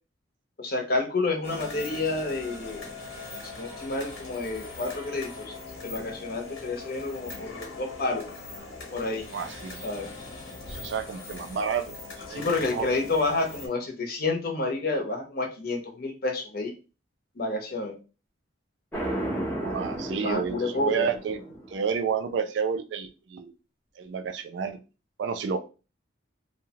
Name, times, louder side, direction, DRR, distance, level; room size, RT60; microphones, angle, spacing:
voice 1, 0.6-2.9 3.6-5.5 5.8-8.3 8.9-9.3 9.8-10.1 12.3-16.7 17.4-17.9 20.2-21.1, left 3 dB, 50° left, 3 dB, 0.6 m, -29 dB
sound 1, 1.4-13.7, left 3 dB, 90° left, 1.0 m, -41 dB
voice 2, 9.3-9.8 10.7-12.0 12.3-12.5 12.7-12.9 19.6-20.6 20.8-21.4 21.7-23.5 24.0-24.8 25.2-25.6, right 6 dB, 65° right, 9 dB, 0.3 m, -30 dB
sound 2, 18.9-21.8, right 1 dB, 10° left, 0.6 m, -33 dB
2.7 x 2.1 x 2.7 m, 0.33 s
head